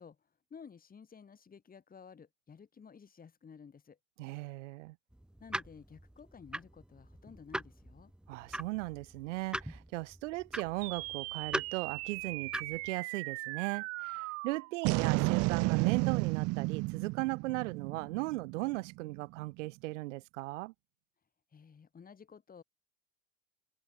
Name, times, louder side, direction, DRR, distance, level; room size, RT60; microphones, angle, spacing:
voice 1, 0.0-4.0 5.4-8.1 21.5-22.6, left 6 dB, 25° left, 4.2 m, -54 dB
voice 2, 4.2-5.0 8.3-20.7, right 21 dB, 75° right, 1.7 m, -37 dB
sound 1, 5.1-12.9, right 1 dB, ahead, 1.0 m, -42 dB
sound 2, 10.8-19.4, right 25 dB, 45° right, 0.4 m, -34 dB
open air
hypercardioid pair, 100°, 37 cm